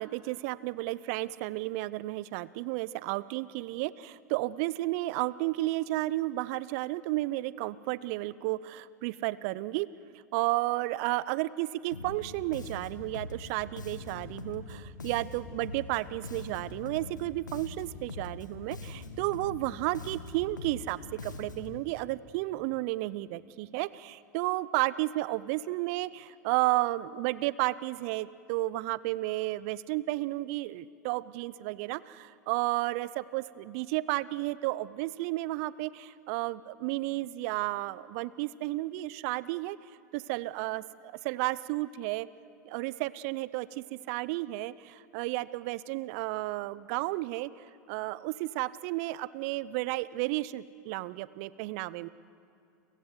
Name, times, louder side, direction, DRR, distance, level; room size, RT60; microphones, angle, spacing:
voice 1, 0.0-9.9 10.3-39.8 40.1-42.3 42.7-47.5 47.9-52.1, right 18 dB, 55° right, 19 dB, 0.6 m, -32 dB
Bass guitar, 11.9-21.8, left 3 dB, 85° left, 1.8 m, -43 dB
29.5 x 15.5 x 8.0 m, 2.4 s
figure-of-eight pair, 90°, 10 cm